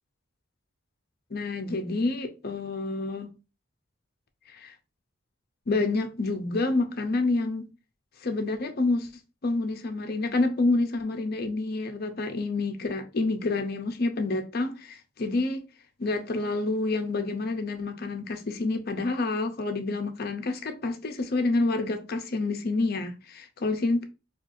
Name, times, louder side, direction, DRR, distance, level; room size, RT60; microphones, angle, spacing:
voice 1, 1.3-3.3 4.5-4.7 5.7-7.7 8.2-9.1 9.4-15.6 16.0-24.0, left 2 dB, 50° left, 0.6 m, -28 dB
4.4 x 2.4 x 2.6 m
head